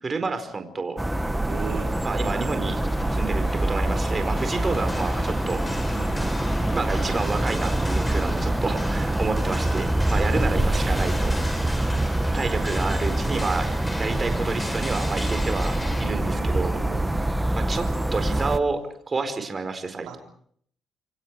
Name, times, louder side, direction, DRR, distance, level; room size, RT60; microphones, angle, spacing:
voice 1, 0.0-1.0 2.0-2.8 3.1-5.6 6.7-11.8 12.3-16.8 17.5-17.8 18.1-18.8 19.1-20.2, right 4 dB, 30° right, 8 dB, 4.4 m, -29 dB
sound 1, 1.0-18.6, right 1 dB, 10° right, 1.4 m, -25 dB
voice 2, 1.5-1.9 5.9-6.7 10.1-11.0 16.0-17.3 20.0-20.2, right 8 dB, 85° right, 2 dB, 4.7 m, -39 dB
sound 2, 2.9-8.3, left 6 dB, 50° left, 3.5 m, -44 dB
sound 3, 4.4-16.1, left 1 dB, 15° left, 6.7 m, -37 dB
28.0 x 25.5 x 4.8 m, 0.62 s
cardioid pair, 90°, 0 cm